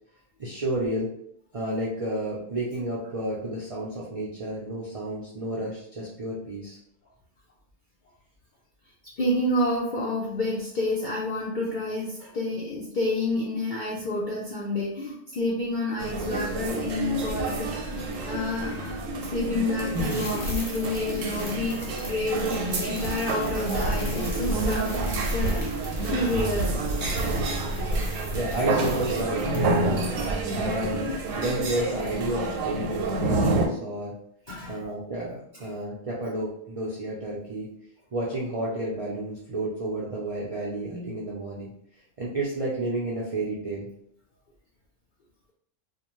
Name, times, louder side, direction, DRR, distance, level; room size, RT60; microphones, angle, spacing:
voice 1, 0.4-1.1 1.5-6.8 28.3-30.0 30.5-34.1 34.6-37.7 38.1-41.7 42.2-43.9, right 1 dB, 65° right, -5 dB, 0.3 m, -31 dB
voice 2, 9.2-25.0 25.3-25.6 26.0-26.7 34.5-34.8, left 2 dB, 70° left, -3 dB, 0.4 m, -29 dB
sound 1, 16.0-33.7, right 2 dB, 80° right, 1.0 m, -28 dB
sound 2, 19.9-29.9 30.2-30.3, left 1 dB, 25° left, 0.7 m, -42 dB
2.5 x 2.2 x 2.9 m, 0.70 s
omnidirectional pair, 1.3 m